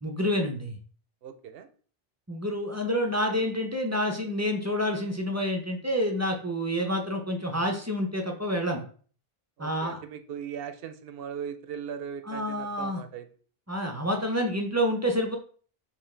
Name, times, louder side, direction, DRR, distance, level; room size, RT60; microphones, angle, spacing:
voice 1, 0.0-0.8 2.3-8.8 9.6-10.0 12.3-13.0 13.7-15.4, equal, 20° right, 2 dB, 0.5 m, -28 dB
voice 2, 1.2-1.7 9.6-13.3, right 8 dB, 70° right, 9 dB, 0.8 m, -39 dB
5.6 x 2.4 x 3.2 m, 0.43 s
omnidirectional pair, 1.0 m